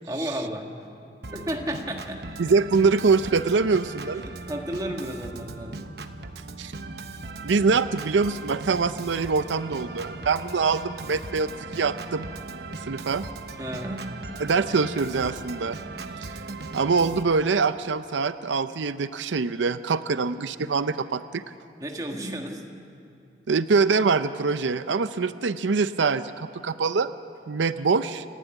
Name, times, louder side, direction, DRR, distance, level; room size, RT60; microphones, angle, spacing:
voice 1, 0.1-0.7 1.3-2.3 4.0-5.9 13.6-14.1 20.1-20.2 21.8-22.7, right 1 dB, 20° right, 2 dB, 1.7 m, -33 dB
Organ, 1.2-17.2, right 3 dB, 60° right, 1.0 m, -38 dB
voice 2, 2.4-4.2 6.6-6.7 7.4-12.3 12.9-13.2 14.4-15.8 16.2-16.4 16.7-21.4 23.5-27.1 27.5-28.2, right 4 dB, 90° right, 12 dB, 0.6 m, -24 dB
30.0 x 12.0 x 9.1 m, 2.6 s
head